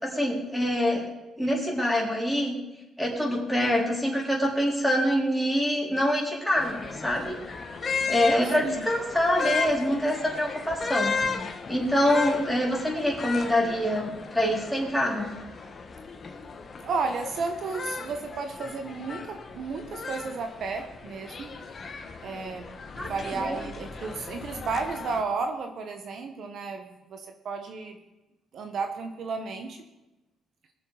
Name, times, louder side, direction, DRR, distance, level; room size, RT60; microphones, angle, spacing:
voice 1, 0.0-1.0 1.4-2.6 3.0-7.4 8.1-11.2 11.7-15.3 23.0-23.1 23.4-23.6, equal, ahead, -3 dB, 4.3 m, -25 dB
sound 1, 6.6-25.2, left 5 dB, 40° left, 1.5 m, -35 dB
voice 2, 16.8-21.6 22.2-28.0 28.5-29.8, right 4 dB, 60° right, 5 dB, 1.3 m, -33 dB
22.0 x 7.4 x 5.1 m, 1.0 s
cardioid pair, 100°, 0 cm